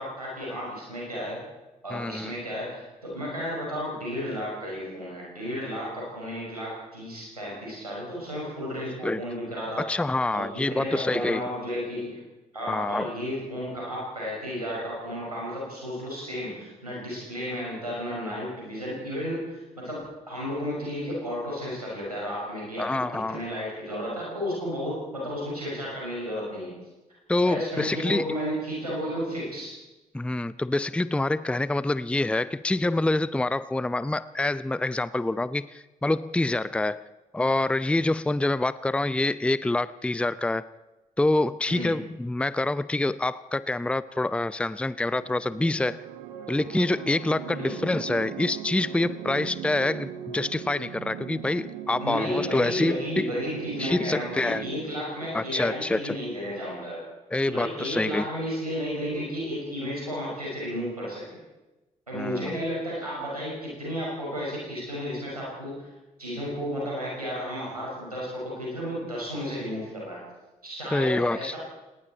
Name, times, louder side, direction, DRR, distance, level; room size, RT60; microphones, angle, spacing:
voice 1, 0.0-1.4 1.8-9.9 10.3-12.2 12.5-26.7 27.4-29.7 41.7-41.9 47.5-47.8 52.0-57.0 57.5-61.2 62.1-65.9 66.2-70.2 70.6-71.6, equal, 90° right, -5 dB, 5.9 m, -33 dB
voice 2, 1.9-2.3 9.0-9.2 9.8-11.4 12.7-13.1 22.8-23.4 27.3-28.3 30.1-37.0 37.3-40.7 41.2-46.0 46.5-53.3 53.8-54.7 55.3-56.2 57.3-58.3 62.1-62.6 70.9-71.6, left 2 dB, 5° left, 17 dB, 0.6 m, -26 dB
sound 1, 45.2-54.8, right 8 dB, 70° right, 1.6 m, -39 dB
30.0 x 19.5 x 4.4 m, 1.1 s
figure-of-eight pair, 40°, 19 cm